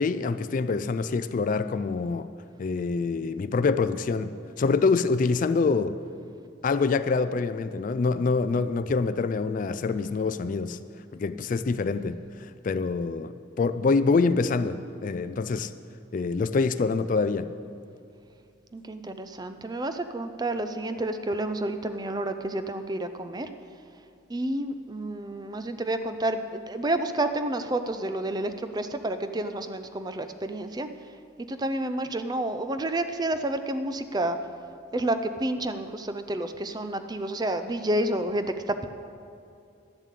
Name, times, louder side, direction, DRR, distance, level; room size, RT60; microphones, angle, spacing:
voice 1, 0.0-2.3 2.6-6.0 6.6-10.8 11.1-15.7 16.1-17.5, left 4 dB, 40° left, 12 dB, 0.3 m, -26 dB
voice 2, 18.7-23.5 24.3-30.9 31.5-34.4 34.9-38.9, right 1 dB, 20° right, 9 dB, 0.5 m, -30 dB
11.5 x 7.5 x 8.2 m, 2.5 s
head